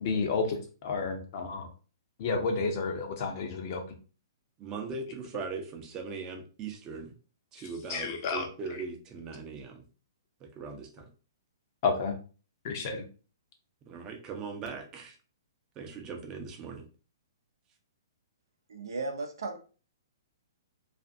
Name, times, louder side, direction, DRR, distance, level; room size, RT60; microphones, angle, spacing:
voice 1, 0.0-1.7 2.2-3.8 7.6-8.8 11.8-12.1 12.6-13.0, left 4 dB, 45° left, 4 dB, 0.7 m, -31 dB
voice 2, 4.6-7.1 7.5-9.8 10.4-11.1 13.9-15.2 15.8-16.8, right 4 dB, 25° right, 4 dB, 0.6 m, -40 dB
voice 3, 18.7-19.6, right 3 dB, 75° right, 5 dB, 0.5 m, -35 dB
2.5 x 2.4 x 2.5 m, 0.36 s
hypercardioid pair, 125°, 2 cm